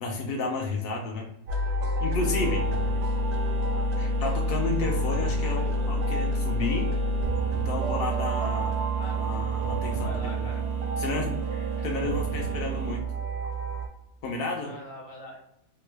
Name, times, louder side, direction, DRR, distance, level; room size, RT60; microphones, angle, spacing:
voice 1, 0.0-1.3 2.0-2.7 4.0-6.9 7.5-8.8 9.2-10.1 11.0-13.0 14.2-14.7, left 3 dB, 70° left, 0 dB, 0.5 m, -32 dB
sound 1, 1.5-13.9, right 1 dB, 60° right, 0.7 m, -28 dB
sound 2, 2.2-13.0, right 4 dB, 85° right, 1.1 m, -38 dB
voice 2, 3.6-4.1 5.5-6.0 9.0-9.2 10.0-10.6 14.6-15.4, left 1 dB, 45° left, -2 dB, 1.0 m, -43 dB
3.0 x 2.4 x 3.0 m, 0.82 s
omnidirectional pair, 1.5 m